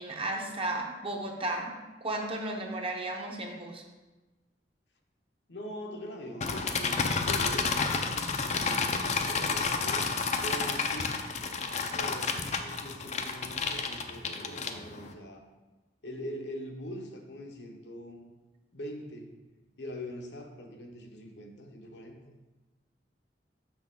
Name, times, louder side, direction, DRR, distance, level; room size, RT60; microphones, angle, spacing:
voice 1, 0.0-1.7 2.0-3.8, right 2 dB, 35° right, 1 dB, 0.9 m, -34 dB
voice 2, 5.5-10.1 10.4-11.2 11.9-15.5 16.0-18.3 18.7-19.3 19.8-22.2, equal, 75° left, 2 dB, 0.9 m, -43 dB
sound 1, 6.4-15.1, left 4 dB, 40° left, 0.5 m, -30 dB
6.2 x 6.0 x 3.6 m, 1.1 s
head